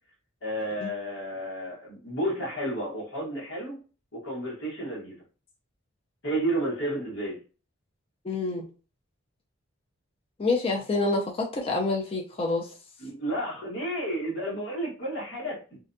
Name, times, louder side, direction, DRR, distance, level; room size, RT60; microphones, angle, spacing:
voice 1, 0.4-3.8 4.1-5.2 6.2-7.4 13.0-15.8, right 1 dB, 60° left, -5 dB, 1.2 m, -31 dB
voice 2, 8.2-8.7 10.4-12.7, left 3 dB, 25° left, -1 dB, 0.4 m, -27 dB
2.5 x 2.2 x 2.5 m, 0.37 s
head